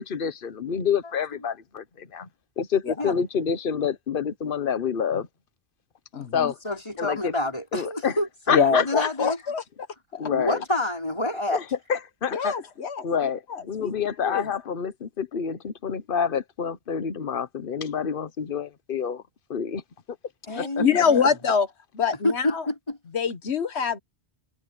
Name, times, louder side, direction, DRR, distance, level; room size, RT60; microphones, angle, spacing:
voice 1, 0.0-2.3 2.6-5.3 6.3-6.6 7.0-7.3 7.7-8.2 8.5-9.3 10.2-10.6 11.5-12.6 13.0-19.2 19.5-19.8 20.6-21.0, left 7 dB, 55° left, 1.2 m, -28 dB
voice 2, 6.1-6.5 8.5-9.6 10.1-10.3 12.3-13.1 13.5-13.9 14.2-14.4 20.5-21.7 21.9-22.6 23.1-24.0, left 6 dB, 75° left, 1.5 m, -24 dB
voice 3, 6.6-9.4 10.3-11.6 20.5-21.3 22.2-23.0, left 1 dB, 30° left, 5.5 m, -28 dB
omnidirectional pair, 1.1 m